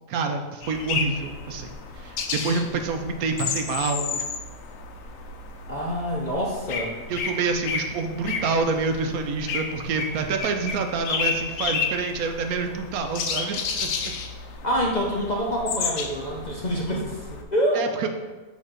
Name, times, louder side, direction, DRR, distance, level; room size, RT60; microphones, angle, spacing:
voice 1, 0.1-1.7 2.0-4.2 7.1-14.1 17.7-18.1, right 4 dB, 75° right, 5 dB, 1.0 m, -27 dB
sound 1, 0.6-17.4, left 5 dB, 70° left, 1.0 m, -32 dB
voice 2, 5.7-7.0 14.6-17.8, equal, 45° left, -2 dB, 0.6 m, -26 dB
6.5 x 3.0 x 5.0 m, 1.3 s
omnidirectional pair, 1.6 m